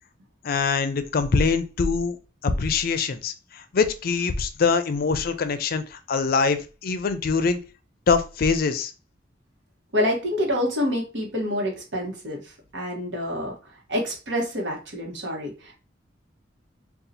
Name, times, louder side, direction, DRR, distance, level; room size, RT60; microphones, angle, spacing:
voice 1, 0.4-2.2 2.4-7.6 8.1-8.9, left 4 dB, 55° left, 10 dB, 0.4 m, -23 dB
voice 2, 9.9-12.4 12.7-13.5 13.9-15.7, left 1 dB, 75° right, 0 dB, 1.1 m, -27 dB
2.7 x 2.4 x 3.9 m, 0.32 s
head